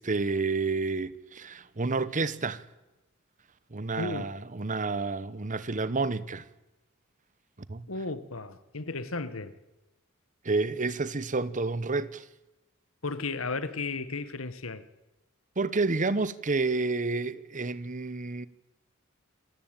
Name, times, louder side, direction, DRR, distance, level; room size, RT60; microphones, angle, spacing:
voice 1, 0.0-2.6 3.7-6.4 7.7-7.9 10.4-12.2 15.6-18.5, right 3 dB, 40° right, 1.0 m, -29 dB
voice 2, 4.0-4.3 7.9-9.5 13.0-14.8, left 3 dB, 85° left, 1.5 m, -34 dB
27.0 x 14.5 x 9.1 m
head